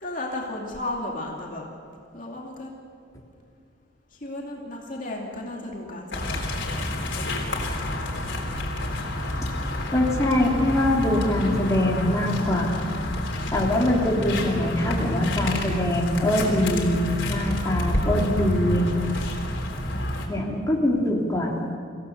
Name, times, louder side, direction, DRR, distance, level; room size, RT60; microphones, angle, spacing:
voice 1, 0.0-1.6 2.1-2.7 4.1-6.8 7.1-8.6 19.8-20.6, left 1 dB, 45° left, -1 dB, 2.5 m, -35 dB
sound 1, 6.1-20.3, left 1 dB, 80° left, 3.6 m, -28 dB
voice 2, 9.9-12.8 13.5-17.0 17.3-18.9 20.3-21.5, left 1 dB, 15° left, -3 dB, 3.1 m, -23 dB
25.5 x 16.0 x 6.9 m, 2.4 s
head